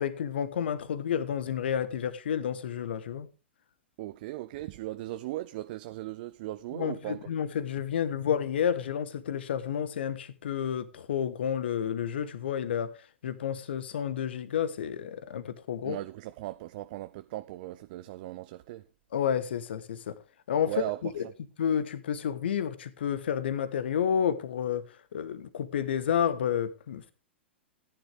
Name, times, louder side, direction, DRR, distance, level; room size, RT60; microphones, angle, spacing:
voice 1, 0.0-3.3 6.7-12.9 13.2-16.0 19.1-20.2 20.5-20.7 21.0-21.2 21.6-27.1, left 8 dB, 60° left, 1.1 m, -30 dB
voice 2, 4.0-7.3 15.8-18.8 20.6-21.0, right 16 dB, 45° right, 0.6 m, -37 dB
14.5 x 10.0 x 3.4 m
figure-of-eight pair, 105°, 6 cm